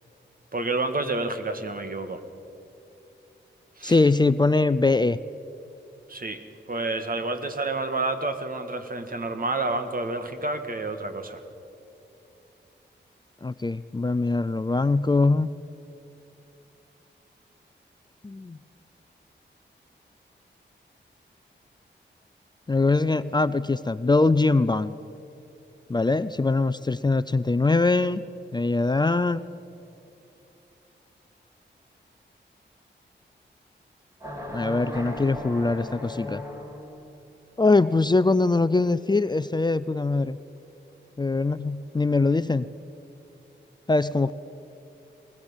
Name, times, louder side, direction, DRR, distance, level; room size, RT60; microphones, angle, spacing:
voice 1, 0.5-2.2 3.8-4.0 6.1-6.4 6.7-11.4, right 2 dB, 50° right, 8 dB, 2.0 m, -29 dB
voice 2, 3.8-5.2 13.4-15.5 18.2-18.6 22.7-25.0 25.9-28.2 28.5-29.4 34.5-36.4 37.6-40.4 41.2-42.7 43.9-44.3, left 3 dB, 20° left, 14 dB, 0.5 m, -22 dB
sound 1, 34.2-37.1, left 1 dB, 15° right, 3.4 m, -36 dB
22.5 x 19.5 x 7.3 m, 2.8 s
cardioid pair, 70°, 19 cm